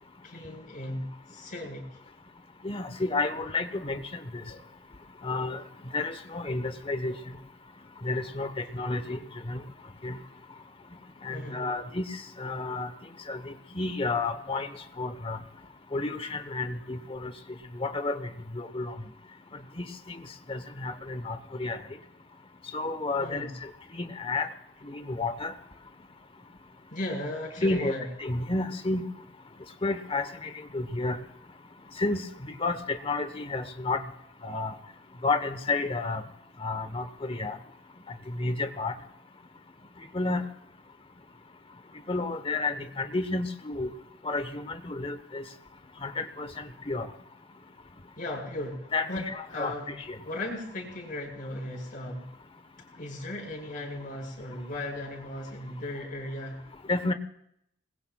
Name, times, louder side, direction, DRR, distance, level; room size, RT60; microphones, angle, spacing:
voice 1, 0.2-1.8 4.5-4.6 11.3-11.6 23.2-23.5 26.9-28.0 48.2-49.2 49.5-49.9 50.2-52.3 52.9-56.6, left 1 dB, 50° left, 0 dB, 5.3 m, -36 dB
voice 2, 2.6-4.0 4.3-4.4 5.2-5.6 5.9-7.1 8.0-9.2 9.4-9.6 10.0-10.2 11.2-12.9 13.3-14.7 15.0-15.4 15.9-17.3 17.7-18.9 19.8-20.2 20.5-21.8 22.7-23.5 23.9-24.5 24.9-25.5 27.6-27.9 28.2-29.1 29.8-31.2 32.0-34.0 34.4-34.7 35.2-36.2 36.6-37.6 38.3-38.9 40.1-40.4 42.1-43.9 44.2-45.4 46.0-47.1 48.9-49.7 56.9-57.1, left 3 dB, 30° left, 9 dB, 1.1 m, -31 dB
28.5 x 20.5 x 2.4 m, 0.74 s
head